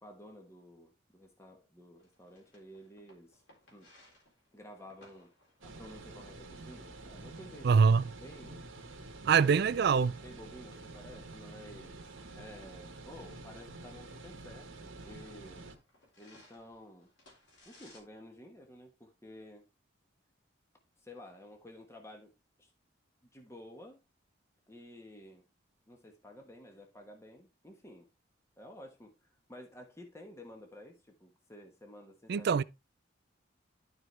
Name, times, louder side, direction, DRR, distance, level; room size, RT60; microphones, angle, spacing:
voice 1, 0.0-3.4 3.7-3.9 4.5-5.3 5.6-9.1 10.2-15.7 16.2-17.1 17.6-19.6 21.0-22.3 22.6-22.7 23.3-24.0 24.7-25.4 25.9-28.1 28.6-32.5, left 1 dB, 15° left, 1.2 m, -52 dB
sound 1, 2.0-18.0, left 1 dB, 65° left, 3.9 m, -65 dB
sound 2, 5.6-15.8, right 2 dB, 90° right, 1.5 m, -48 dB
voice 2, 7.6-8.1 9.2-10.2 32.3-32.6, right 6 dB, 55° right, 0.3 m, -24 dB
12.0 x 4.6 x 3.4 m
head